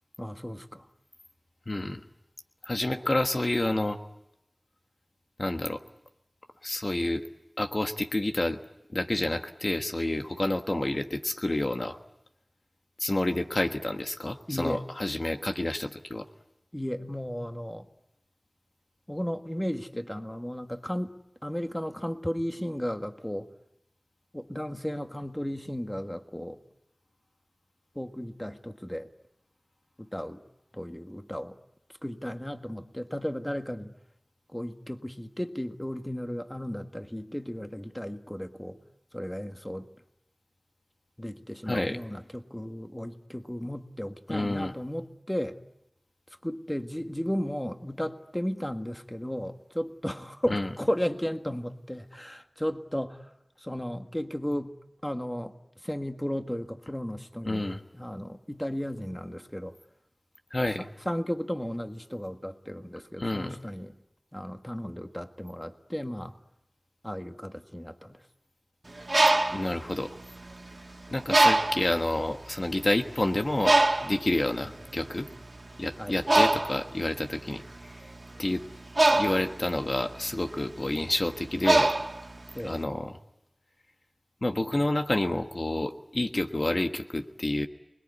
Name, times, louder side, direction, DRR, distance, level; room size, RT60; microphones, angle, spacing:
voice 1, 0.2-0.8 14.5-14.8 16.7-17.9 19.1-21.1 21.4-23.5 24.3-26.6 27.9-29.1 30.0-30.4 30.7-31.6 32.0-33.9 34.5-38.8 39.1-39.9 41.2-45.6 46.4-53.3 53.6-54.7 55.0-57.7 57.9-59.7 60.8-63.9 64.3-66.3 67.0-68.2 76.0-76.2 82.5-82.8, equal, 15° left, 6 dB, 1.7 m, -34 dB
voice 2, 1.7-2.0 2.6-4.0 5.4-5.8 6.6-7.3 7.6-8.6 8.9-12.0 13.0-16.3 41.7-42.0 44.3-44.7 50.5-50.7 57.4-57.8 60.5-60.9 63.2-63.6 69.5-70.2 71.1-75.3 75.8-77.6 77.9-78.0 78.4-78.6 79.1-82.0 82.6-83.1 84.4-87.7, left 1 dB, 55° left, 5 dB, 1.3 m, -29 dB
Bird, 68.9-70.7 71.3-72.0 72.6-72.8 73.0-82.8, right 2 dB, 60° right, 2.0 m, -24 dB
28.5 x 21.0 x 9.7 m, 0.86 s
wide cardioid pair, 40°, 0 cm